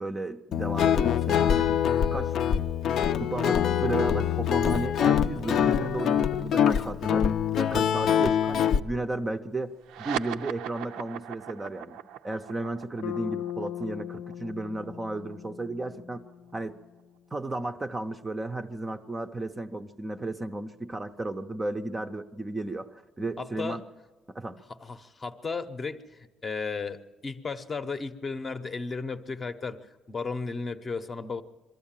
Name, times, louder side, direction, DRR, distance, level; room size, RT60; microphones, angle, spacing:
voice 1, 0.0-2.6 3.2-7.3 7.6-16.2 16.5-16.8 17.3-23.8 24.3-24.6, right 2 dB, 15° right, 6 dB, 0.6 m, -34 dB
Guitar, 0.5-8.8, left 9 dB, 50° left, 0.5 m, -24 dB
sound 1, 9.8-16.7, right 11 dB, 90° right, 0.6 m, -39 dB
Bass guitar, 13.0-17.1, left 11 dB, 90° left, 0.7 m, -39 dB
voice 2, 23.4-23.8 24.8-29.8 30.1-31.4, left 4 dB, 25° left, 10 dB, 0.8 m, -34 dB
23.0 x 13.5 x 8.9 m, 1.2 s
cardioid pair, 155°, 0 cm